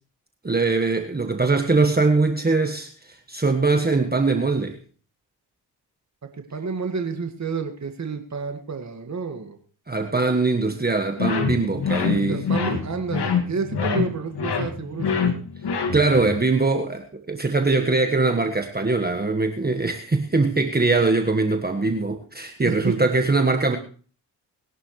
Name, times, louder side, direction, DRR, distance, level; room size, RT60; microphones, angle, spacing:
voice 1, 0.4-4.8 9.9-12.4 15.9-23.8, right 3 dB, 20° right, 5 dB, 1.5 m, -22 dB
voice 2, 6.4-9.6 12.3-15.3 22.6-23.0, right 5 dB, 35° right, 5 dB, 2.0 m, -30 dB
sound 1, 11.2-16.3, left 6 dB, 55° left, 2.3 m, -25 dB
21.0 x 11.0 x 3.2 m, 0.40 s
hypercardioid pair, 45°, 47 cm